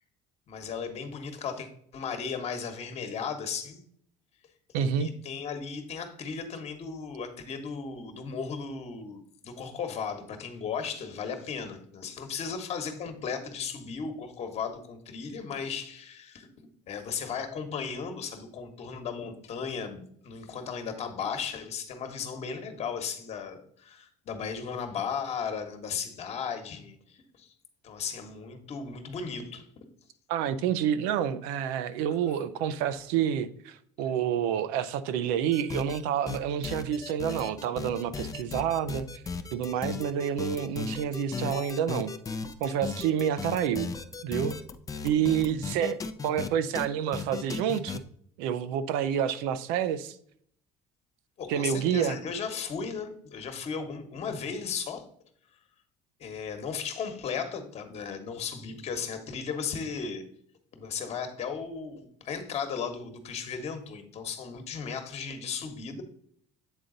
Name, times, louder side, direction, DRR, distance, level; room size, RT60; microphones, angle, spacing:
voice 1, 0.5-3.8 5.0-16.5 16.9-27.5 27.8-29.7 51.4-55.0 56.2-60.2 60.7-66.0, left 6 dB, 45° left, 7 dB, 1.2 m, -36 dB
voice 2, 4.7-5.1 30.3-39.1 39.5-42.1 42.6-43.9 44.2-44.6 45.0-48.0 48.4-50.2 51.5-52.2, right 9 dB, 85° right, 13 dB, 0.6 m, -28 dB
sound 1, 35.5-36.0 36.3-46.5 46.7-46.9 47.1-48.0, left 5 dB, 25° left, 0.5 m, -36 dB
8.1 x 3.9 x 3.9 m, 0.65 s
cardioid pair, 110°, 15 cm